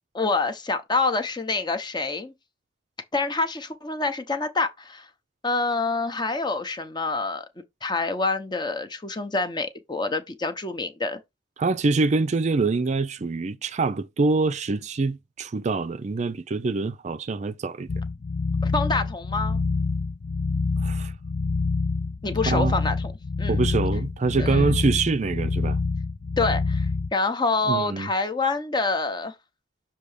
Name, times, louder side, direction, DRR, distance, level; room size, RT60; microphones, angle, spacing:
voice 1, 0.1-2.3 3.1-5.1 5.4-7.5 7.8-11.2 18.6-19.6 22.2-23.1 23.4-23.6 24.4-24.7 26.4-29.3, left 3 dB, 25° left, 0.8 m, -26 dB
voice 2, 11.6-17.9 20.8-21.1 22.5-22.7 23.5-25.8 27.7-28.1, right 3 dB, 40° right, 0.4 m, -25 dB
sound 1, 17.9-27.1, left 4 dB, 45° left, 0.4 m, -26 dB
6.7 x 2.8 x 4.9 m
head